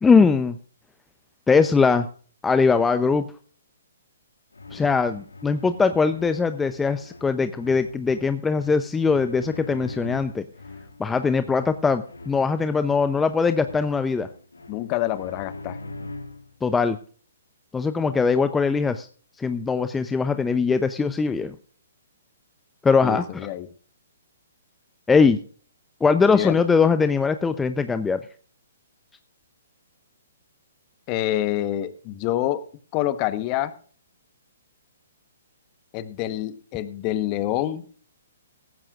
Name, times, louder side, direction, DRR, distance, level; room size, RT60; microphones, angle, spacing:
voice 1, 0.0-0.6 1.5-2.1 2.4-3.2 4.7-10.4 11.0-14.3 16.6-17.0 17.7-19.1 19.4-21.5 22.8-23.2 25.1-25.4 26.0-28.2, left 5 dB, 10° left, 10 dB, 0.7 m, -21 dB
sound 1, 4.5-16.6, left 2 dB, 90° left, 2.5 m, -42 dB
voice 2, 14.7-15.8 23.0-23.7 26.3-26.6 31.1-32.6 32.9-33.7 35.9-37.9, left 13 dB, 30° left, 13 dB, 1.2 m, -27 dB
17.0 x 14.5 x 2.5 m, 0.43 s
hypercardioid pair, 130°, 0 cm